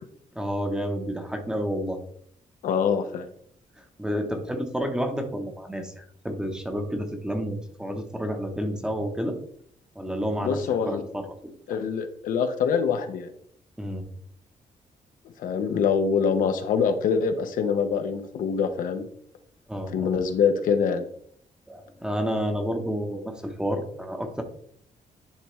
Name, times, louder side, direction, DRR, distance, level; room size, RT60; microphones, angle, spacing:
voice 1, 0.3-2.0 4.0-9.4 10.0-11.5 13.8-14.0 19.7-20.1 21.7-24.4, equal, 5° right, 5 dB, 0.8 m, -30 dB
voice 2, 2.6-3.3 10.4-11.0 11.7-13.3 15.4-19.1 19.9-21.0, left 6 dB, 85° left, 7 dB, 0.8 m, -24 dB
10.0 x 3.5 x 3.1 m, 0.65 s
cardioid pair, 150°, 14 cm